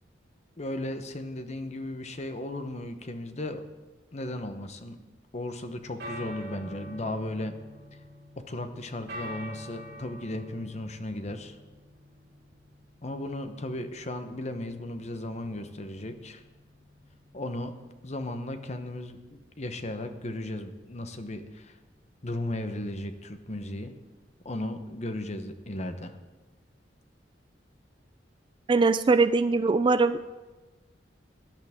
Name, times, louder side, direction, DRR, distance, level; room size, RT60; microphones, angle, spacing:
voice 1, 0.6-3.7 4.1-5.0 5.3-7.6 8.4-11.6 13.0-16.4 17.3-17.7 18.0-21.8 22.2-23.9 24.4-26.2, left 1 dB, 40° left, 8 dB, 1.0 m, -35 dB
sound 1, 6.0-24.7, equal, 60° right, 4.3 m, -48 dB
voice 2, 28.7-30.2, right 3 dB, 25° right, 13 dB, 0.3 m, -22 dB
18.0 x 10.5 x 3.6 m, 1.2 s
head